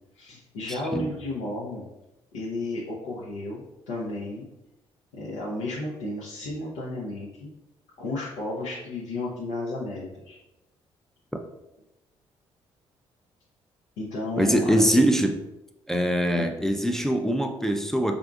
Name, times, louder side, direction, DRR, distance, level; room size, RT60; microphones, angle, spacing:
voice 1, 0.1-1.9 2.3-4.5 5.1-7.5 8.0-10.4 14.0-15.0 16.4-16.5, left 2 dB, 90° left, -6 dB, 0.5 m, -33 dB
voice 2, 0.7-1.1 14.4-15.3 15.9-18.2, equal, 5° left, 4 dB, 0.4 m, -23 dB
3.6 x 2.5 x 2.3 m, 0.94 s
supercardioid pair, 60°, 12 cm